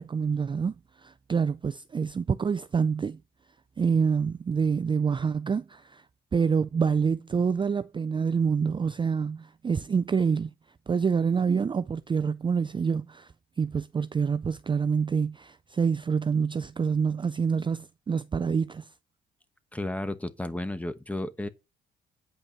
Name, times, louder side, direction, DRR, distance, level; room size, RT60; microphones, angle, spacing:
voice 1, 0.0-3.2 3.8-6.0 6.3-10.5 10.9-13.3 13.6-18.9, right 6 dB, 25° right, 0.4 m, -27 dB
voice 2, 19.7-21.5, left 1 dB, 5° left, 1.0 m, -33 dB
8.7 x 5.3 x 5.9 m
cardioid pair, 90°, 20 cm